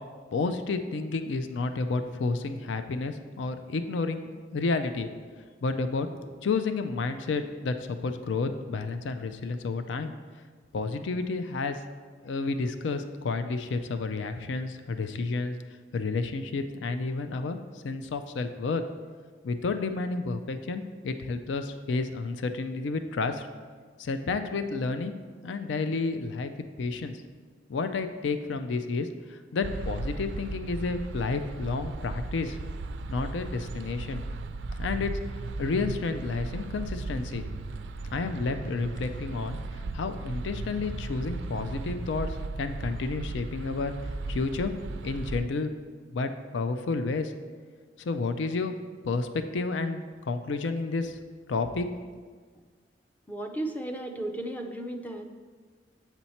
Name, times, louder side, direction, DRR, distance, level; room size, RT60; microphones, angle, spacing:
voice 1, 0.3-5.1 5.6-10.1 10.7-11.8 12.2-15.6 15.9-17.6 17.8-18.8 19.4-23.5 24.0-25.1 25.4-26.5 26.8-27.2 27.7-32.6 33.1-34.2 34.8-35.1 35.6-37.4 38.1-39.6 39.9-43.9 44.3-44.7 45.0-45.7 46.1-47.3 48.0-48.7 49.0-51.2 51.5-51.9, left 3 dB, 75° left, 9 dB, 0.4 m, -31 dB
sound 1, 29.6-45.4, right 2 dB, 75° right, 0.4 m, -36 dB
voice 2, 53.3-55.3, right 1 dB, 10° left, 4 dB, 0.5 m, -34 dB
7.9 x 4.4 x 4.2 m, 1.5 s
head